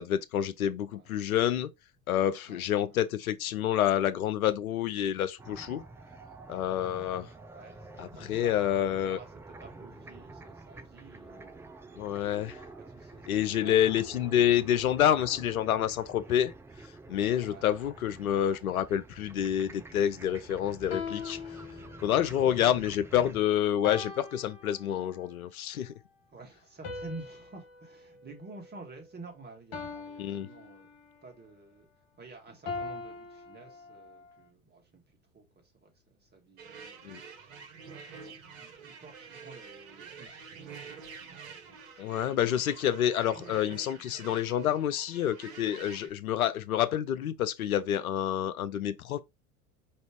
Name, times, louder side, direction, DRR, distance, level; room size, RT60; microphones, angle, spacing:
voice 1, 0.0-1.7 2.1-5.8 6.5-7.3 8.0-9.2 12.0-12.6 13.3-16.5 17.1-21.4 22.0-25.9 30.2-30.5 37.0-37.2 42.0-49.2, left 10 dB, 80° left, 0.6 m, -28 dB
voice 2, 0.9-1.3 2.5-3.0 7.2-12.4 12.8-14.6 17.4-17.7 26.3-30.9 31.2-42.4 43.4-43.5, right 3 dB, 25° right, 1.8 m, -51 dB
sound 1, 5.4-23.4, right 3 dB, 5° right, 0.3 m, -48 dB
sound 2, 20.9-22.3 23.8-25.2 26.8-29.2 29.7-31.2 32.7-34.2, left 4 dB, 50° left, 1.7 m, -42 dB
sound 3, 36.6-46.1, right 5 dB, 65° right, 1.4 m, -48 dB
5.1 x 3.2 x 3.0 m
hypercardioid pair, 85°, 42 cm